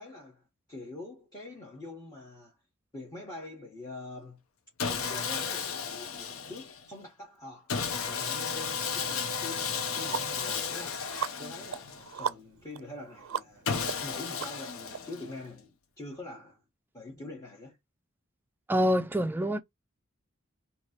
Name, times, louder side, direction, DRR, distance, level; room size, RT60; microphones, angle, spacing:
voice 1, 0.0-2.6 2.9-4.4 4.9-7.7 8.1-13.7 14.0-16.6 16.9-17.8, left 2 dB, 20° left, 1.2 m, -45 dB
Sawing, 4.8-6.8 7.7-12.2 13.7-15.5, left 6 dB, 75° left, 0.7 m, -34 dB
sound 1, 9.1-9.2 9.6-15.0, right 7 dB, 70° right, 0.4 m, -38 dB
voice 2, 18.7-19.6, equal, 10° right, 0.3 m, -26 dB
3.1 x 2.8 x 4.2 m
head